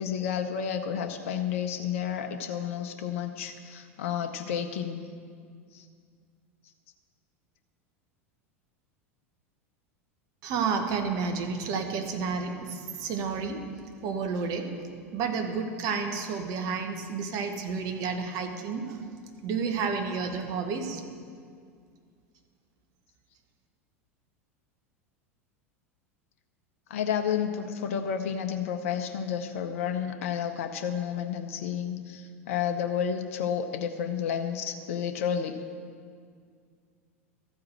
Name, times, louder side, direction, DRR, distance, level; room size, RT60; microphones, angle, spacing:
voice 1, 0.0-5.0 5.7-5.8 26.9-35.6, left 8 dB, 65° left, 6 dB, 0.7 m, -31 dB
voice 2, 10.4-13.7 14.0-14.7 15.1-19.0 19.4-21.0, right 5 dB, 50° right, 5 dB, 1.2 m, -31 dB
13.0 x 4.8 x 7.6 m, 2.1 s
hypercardioid pair, 85°, 8 cm